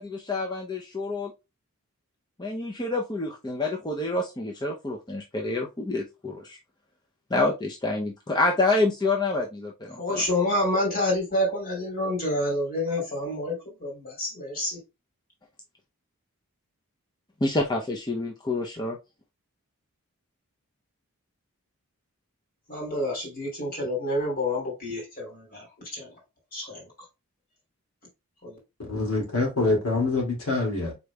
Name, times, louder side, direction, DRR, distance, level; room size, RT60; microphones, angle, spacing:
voice 1, 0.0-1.3 2.4-6.6 7.3-10.2 17.4-19.0, left 2 dB, 20° left, 0.5 m, -27 dB
voice 2, 10.0-14.8 22.7-26.1 26.5-26.8 28.4-28.6, left 1 dB, 40° left, 2.6 m, -28 dB
voice 3, 28.8-30.9, left 2 dB, 80° left, 2.2 m, -25 dB
5.0 x 4.0 x 2.2 m
head